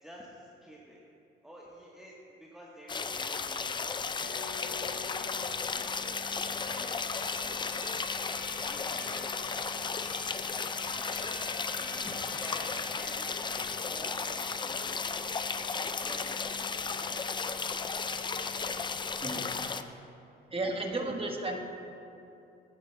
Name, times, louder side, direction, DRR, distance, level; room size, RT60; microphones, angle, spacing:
voice 1, 0.0-1.0 1.4-6.0 6.7-7.0 7.4-8.2 8.6-9.6 10.4-11.5 11.8-15.3 16.0-17.3 18.6-18.8 20.6-21.4, equal, ahead, -5 dB, 1.1 m, -51 dB
sound 1, 2.9-19.8, left 5 dB, 25° left, 0.4 m, -34 dB
sound 2, 4.2-13.6, left 2 dB, 85° left, 1.7 m, -47 dB
voice 2, 20.5-21.6, right 2 dB, 30° right, 1 dB, 1.3 m, -33 dB
14.5 x 9.6 x 2.2 m, 2.8 s
cardioid pair, 90°, 20 cm